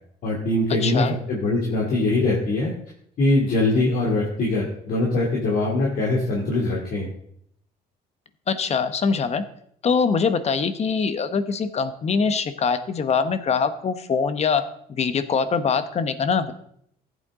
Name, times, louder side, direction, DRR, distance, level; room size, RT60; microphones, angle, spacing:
voice 1, 0.2-2.7 3.2-7.1, left 2 dB, 60° left, -3 dB, 2.5 m, -22 dB
voice 2, 0.8-1.1 8.5-9.5 9.8-16.5, left 5 dB, 40° left, 11 dB, 1.0 m, -23 dB
14.5 x 8.5 x 3.7 m, 0.69 s
cardioid pair, 110°, 17 cm